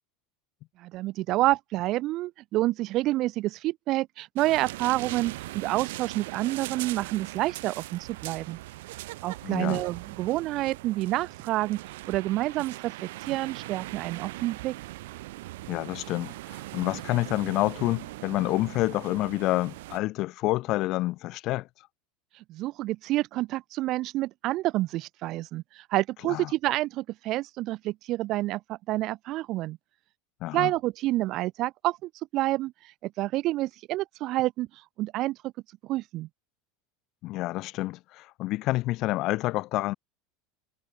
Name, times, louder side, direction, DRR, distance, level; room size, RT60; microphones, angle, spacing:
voice 1, 0.8-8.6 9.2-11.8 12.1-14.8 22.3-29.8 30.5-34.7 35.0-35.5 35.8-36.3, right 17 dB, 55° right, 0.5 m, -28 dB
sound 1, 4.4-20.0, right 18 dB, 75° right, 4.1 m, -40 dB
voice 2, 9.4-9.8 15.7-21.7 26.3-26.5 30.4-30.7 37.2-39.9, left 18 dB, 55° left, 1.9 m, -28 dB
hypercardioid pair, 90°, 0 cm